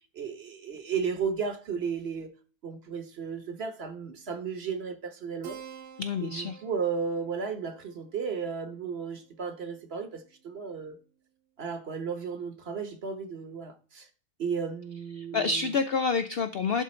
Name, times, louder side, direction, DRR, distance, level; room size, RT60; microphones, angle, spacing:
voice 1, 0.1-2.3 2.6-5.6 6.2-11.0 11.6-14.1 14.4-15.7, right 6 dB, 45° right, 1.1 m, -34 dB
Keyboard (musical), 5.4-10.4, right 8 dB, 80° right, 1.4 m, -50 dB
voice 2, 6.0-6.6 15.2-16.8, left 5 dB, 85° left, 0.5 m, -28 dB
11.0 x 3.8 x 4.3 m
omnidirectional pair, 1.6 m